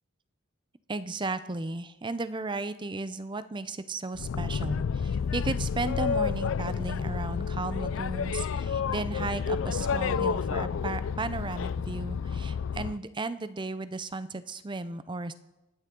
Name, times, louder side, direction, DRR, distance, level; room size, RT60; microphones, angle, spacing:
voice 1, 0.9-15.3, right 3 dB, 25° right, 13 dB, 0.5 m, -35 dB
Boat Water vehicle, 4.2-13.0, left 6 dB, 75° left, 0.4 m, -30 dB
27.5 x 9.2 x 3.8 m, 1.0 s
head